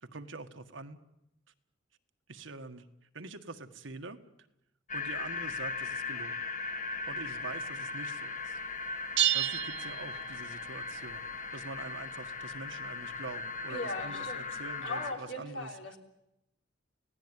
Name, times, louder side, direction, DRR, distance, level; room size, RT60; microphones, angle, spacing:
voice 1, 0.0-1.0 2.3-2.9 3.1-4.2 4.9-6.4 7.1-8.6 9.3-15.7, right 3 dB, 90° right, 7 dB, 1.6 m, -45 dB
sound 1, 4.9-15.1, left 4 dB, 45° left, 2.0 m, -38 dB
sound 2, 9.2-10.7, right 13 dB, 65° right, 0.9 m, -30 dB
voice 2, 13.7-14.4 14.8-16.0, left 2 dB, 85° left, 3 dB, 3.7 m, -38 dB
29.0 x 17.5 x 9.8 m, 0.86 s
head